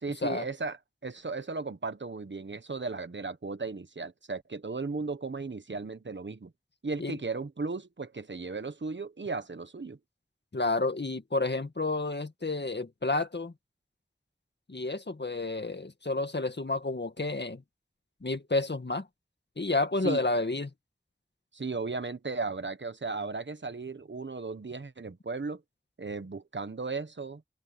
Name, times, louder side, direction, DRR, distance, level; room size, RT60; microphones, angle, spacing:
voice 1, 0.0-0.8 1.0-6.5 6.8-10.0 20.0-20.2 21.5-25.6 26.0-27.4, right 4 dB, 90° right, 1.2 m, -36 dB
voice 2, 10.5-13.5 14.7-17.6 18.2-19.1 19.6-20.7, left 2 dB, 70° left, 1.9 m, -30 dB
open air
wide cardioid pair, 40°, 19 cm